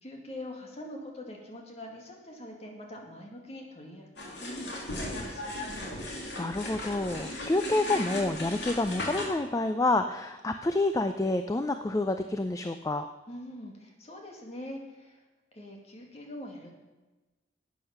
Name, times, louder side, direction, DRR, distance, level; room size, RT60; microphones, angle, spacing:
voice 1, 0.0-4.1 4.4-5.5 13.3-15.2 15.5-16.7, left 1 dB, 35° left, 0 dB, 2.1 m, -43 dB
sound 1, 4.2-9.3, left 1 dB, 75° left, 2.5 m, -37 dB
voice 2, 6.4-13.1, left 2 dB, 20° left, 8 dB, 0.4 m, -28 dB
12.0 x 8.4 x 5.8 m, 1.2 s
head